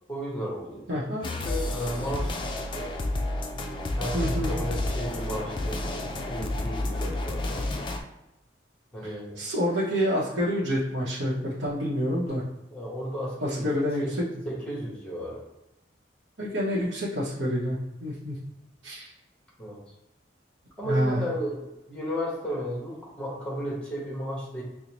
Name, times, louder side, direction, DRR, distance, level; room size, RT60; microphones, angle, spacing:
voice 1, 0.1-2.9 4.0-7.6 8.9-9.4 12.7-14.1 14.4-15.5 19.6-19.8 20.8-24.6, equal, 5° left, -4 dB, 0.9 m, -34 dB
voice 2, 0.9-1.3 4.1-4.5 9.0-12.4 13.4-14.0 16.4-18.4 18.8-19.1 20.8-21.2, equal, 90° right, -7 dB, 0.8 m, -28 dB
sound 1, 1.2-8.0, left 1 dB, 25° left, 0.3 m, -30 dB
5.1 x 2.0 x 2.9 m, 0.93 s
head